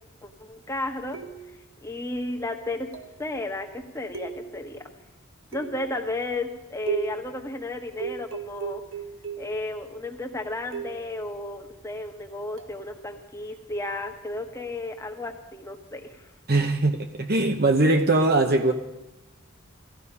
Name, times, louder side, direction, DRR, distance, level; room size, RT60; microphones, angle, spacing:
voice 1, 0.2-1.2 1.8-2.9 3.2-4.8 5.5-8.8 9.4-16.3, left 2 dB, 15° left, 3 dB, 1.4 m, -33 dB
sound 1, 1.1-1.7 2.9-3.3 4.1-4.8 5.5-6.0 6.9-7.3 8.0-9.6 10.7-11.1 12.6-12.8, right 7 dB, 65° right, 1.3 m, -35 dB
voice 2, 16.5-18.7, right 2 dB, 45° right, 5 dB, 0.9 m, -21 dB
17.5 x 14.0 x 5.5 m, 1.0 s
head